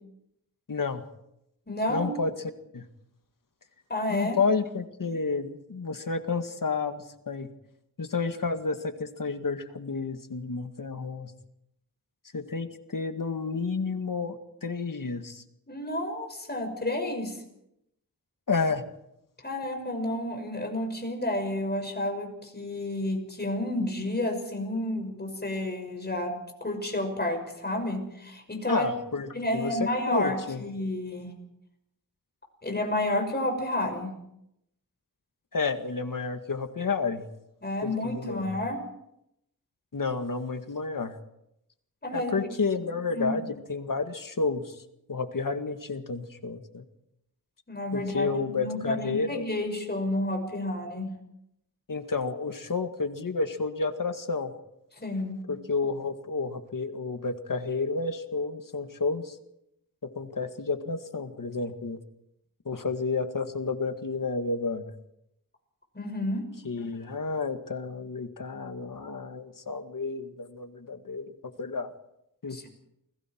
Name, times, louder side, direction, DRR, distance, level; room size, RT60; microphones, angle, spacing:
voice 1, 0.7-1.0 1.9-2.3 2.7-2.9 4.1-7.5 8.0-11.3 12.3-15.4 18.5-18.8 28.7-29.8 30.1-30.6 35.5-37.2 37.8-38.6 39.9-41.1 42.1-44.8 45.1-46.8 47.9-49.5 51.9-54.5 55.5-59.4 60.0-62.0 62.7-64.8 66.6-71.3 71.6-71.9 72.4-72.7, left 4 dB, 65° left, 7 dB, 2.0 m, -31 dB
voice 2, 1.7-2.1 3.9-4.4 15.7-17.4 19.4-26.3 26.6-28.9 29.3-31.3 32.6-34.1 37.6-38.8 42.0-42.4 43.1-43.4 47.7-51.1 55.0-55.4 65.9-66.5 72.5-72.7, left 1 dB, 30° left, 3 dB, 6.1 m, -30 dB
29.0 x 21.0 x 4.6 m, 0.81 s
wide cardioid pair, 100°, 34 cm